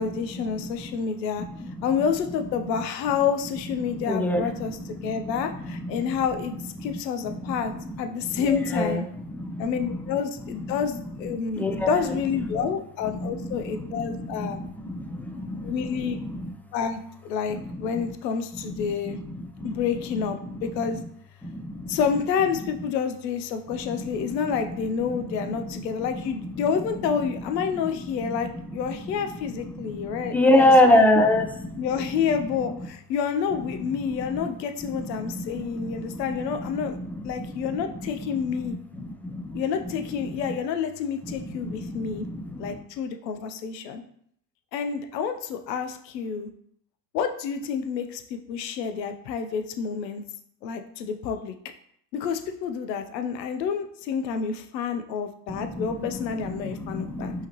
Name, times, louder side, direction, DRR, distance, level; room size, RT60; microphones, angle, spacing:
voice 1, 0.0-1.4 1.8-6.5 6.8-7.7 8.0-9.0 9.6-14.6 15.6-16.2 16.7-19.2 19.6-21.0 21.9-31.0 31.8-37.0 37.2-38.7 39.5-42.3 42.6-44.0 44.7-46.5 47.1-50.2 50.6-51.5 52.1-57.3, left 6 dB, 85° left, 7 dB, 0.7 m, -29 dB
voice 2, 3.9-4.4 5.0-5.2 5.6-6.0 7.3-7.5 7.9-8.0 8.3-9.0 9.3-9.7 11.6-12.0 13.2-15.7 16.0-16.1 16.4-16.5 18.8-18.9 19.6-19.8 21.4-22.0 23.8-24.0 25.7-25.8 29.8-31.8 34.9-37.8 39.0-39.6 41.5-42.8 55.5-56.2 56.6-57.5, left 1 dB, 5° left, 4 dB, 0.4 m, -26 dB
5.6 x 2.9 x 2.9 m, 0.66 s
hypercardioid pair, 75°, 49 cm